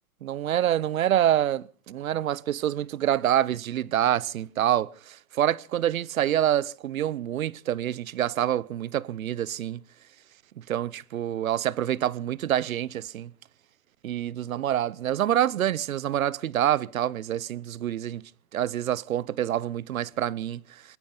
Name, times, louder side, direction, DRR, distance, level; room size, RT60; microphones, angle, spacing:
voice 1, 0.2-9.8 10.6-13.3 14.0-18.2 18.5-20.8, right 11 dB, 70° right, 0.7 m, -27 dB
19.5 x 17.5 x 3.9 m
hypercardioid pair, 175°, 44 cm